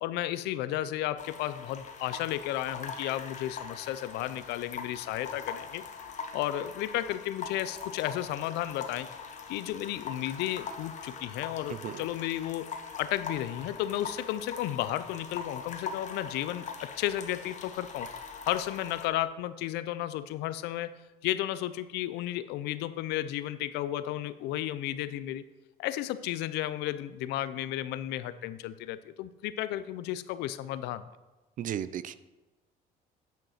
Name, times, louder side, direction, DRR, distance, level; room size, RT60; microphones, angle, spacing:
voice 1, 0.0-5.8 6.3-9.1 9.5-18.1 18.5-20.9 21.2-25.4 25.8-31.1, left 13 dB, 90° left, 14 dB, 0.5 m, -33 dB
sound 1, 1.2-19.1, left 5 dB, 45° left, 1.1 m, -42 dB
voice 2, 11.7-12.1 31.6-32.2, right 10 dB, 50° right, 15 dB, 0.5 m, -35 dB
9.2 x 5.2 x 5.7 m, 1.1 s
cardioid pair, 110°, 17 cm